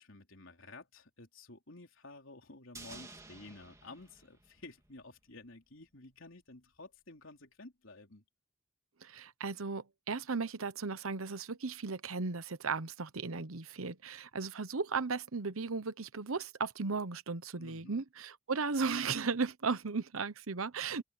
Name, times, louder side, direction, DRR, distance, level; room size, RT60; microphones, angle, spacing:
voice 1, 0.0-8.2 17.6-18.0, left 2 dB, 70° left, 3.6 m, -52 dB
sound 1, 2.7-5.1 5.4-5.5, right 3 dB, 15° right, 2.2 m, -52 dB
voice 2, 9.0-21.0, right 4 dB, 85° right, 1.0 m, -36 dB
head